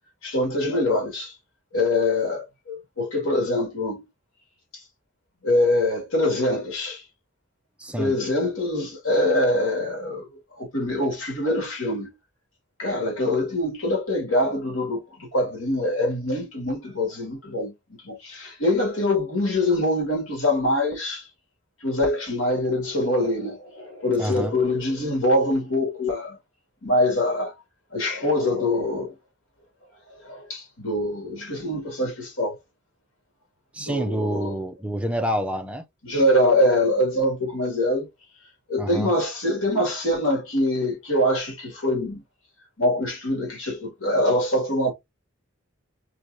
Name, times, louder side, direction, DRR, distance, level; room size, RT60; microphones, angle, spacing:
voice 1, 0.2-1.3 1.7-4.0 5.4-7.0 8.0-10.3 10.6-12.1 12.8-21.2 21.8-26.4 26.8-27.5 27.9-29.1 30.2-32.6 33.8-34.5 36.0-38.1 38.7-42.2 42.8-44.9, left 1 dB, 80° left, 2.1 m, -24 dB
voice 2, 7.8-8.1 24.2-24.5 33.7-35.8 38.8-39.1, equal, 5° right, 0.5 m, -27 dB
4.4 x 3.2 x 2.6 m
head